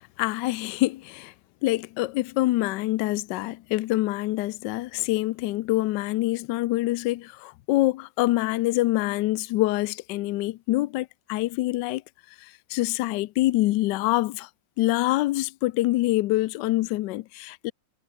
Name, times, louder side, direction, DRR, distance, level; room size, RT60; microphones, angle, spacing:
voice 1, 0.0-1.3 1.6-12.0 12.4-14.5 14.8-17.7, left 17 dB, 80° left, 0.9 m, -25 dB
omnidirectional pair, 2.4 m